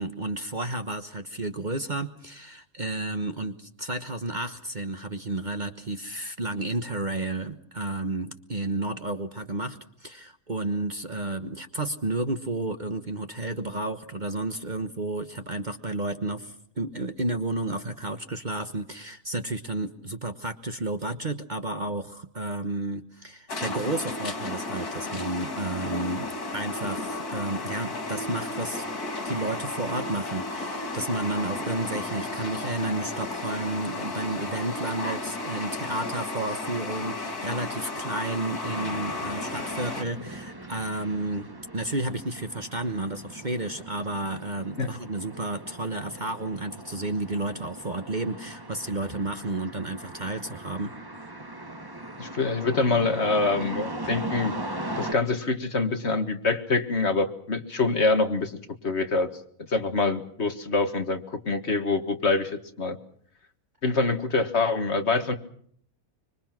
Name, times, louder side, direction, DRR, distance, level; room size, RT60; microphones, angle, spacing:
voice 1, 0.0-26.3 26.5-28.8 29.2-41.5 41.7-50.9, right 2 dB, 35° right, 8 dB, 1.2 m, -32 dB
sound 1, 23.5-40.0, left 2 dB, 90° left, 3.3 m, -33 dB
sound 2, 38.7-55.1, right 1 dB, 15° right, 1.5 m, -39 dB
voice 2, 52.2-58.6 58.8-59.3 59.7-63.0 63.8-65.3, left 3 dB, 45° left, 7 dB, 1.9 m, -25 dB
25.5 x 25.0 x 6.0 m, 0.62 s
omnidirectional pair, 1.6 m